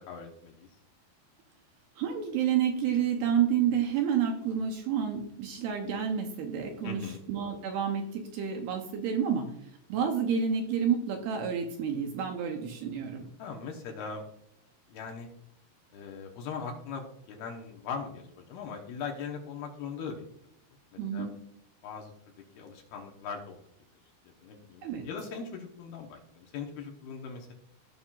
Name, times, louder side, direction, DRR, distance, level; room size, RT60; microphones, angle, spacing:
voice 1, 0.1-0.7 6.8-7.2 13.4-14.3 14.9-15.3 15.9-20.3 20.9-21.3 21.8-22.1 22.6-23.6 24.4-27.5, left 5 dB, 75° left, 1 dB, 2.6 m, -40 dB
voice 2, 2.0-7.0 7.3-9.5 9.9-13.3 21.0-21.3 24.8-25.1, right 8 dB, 75° right, 3 dB, 2.5 m, -29 dB
16.0 x 5.6 x 2.4 m, 0.75 s
omnidirectional pair, 5.2 m